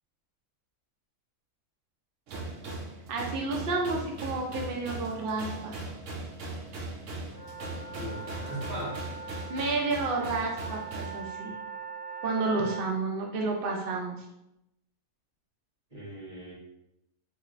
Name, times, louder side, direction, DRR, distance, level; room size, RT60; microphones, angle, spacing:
sound 1, 2.3-11.2, right 2 dB, 65° right, 0.8 m, -39 dB
voice 1, 3.1-5.8 9.5-11.5 12.2-14.1, right 3 dB, 85° right, 0 dB, 0.4 m, -30 dB
sound 2, 7.3-12.9, right 4 dB, 35° left, 0.7 m, -41 dB
voice 2, 8.0-9.0 15.9-16.5, right 1 dB, 25° right, -6 dB, 1.3 m, -38 dB
3.8 x 3.0 x 2.4 m, 0.86 s
omnidirectional pair, 1.6 m